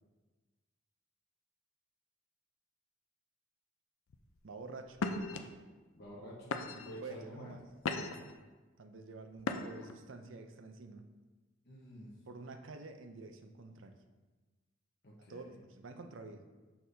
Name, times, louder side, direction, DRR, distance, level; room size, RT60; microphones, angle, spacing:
sound 1, 4.1-4.4 5.0-5.4 6.1-6.2 6.5-7.0 7.5-8.3 9.4-9.9, left 3 dB, 90° left, 0.5 m, -37 dB
voice 1, 4.4-5.1 7.0-7.6 8.2-8.4 8.8-11.1 12.3-14.0 15.3-16.5, right 3 dB, 70° right, 7 dB, 0.5 m, -49 dB
voice 2, 6.0-7.5 11.6-12.1 15.0-15.6, equal, 55° left, -5 dB, 1.1 m, -49 dB
6.6 x 5.8 x 2.7 m, 1.3 s
head